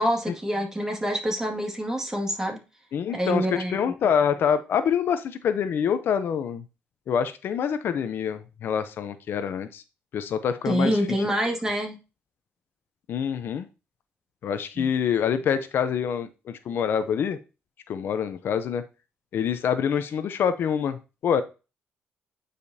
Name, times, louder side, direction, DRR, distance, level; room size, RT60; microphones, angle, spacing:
voice 1, 0.0-2.6 3.1-3.8 10.7-12.0 14.8-14.9, equal, 15° right, 2 dB, 2.1 m, -26 dB
voice 2, 2.9-6.6 7.1-9.8 10.1-11.0 13.1-13.7 14.4-17.4 17.9-18.8 19.3-21.0 21.2-21.4, left 7 dB, 65° left, 11 dB, 0.6 m, -26 dB
9.1 x 5.0 x 2.7 m, 0.29 s
cardioid pair, 100°, 4 cm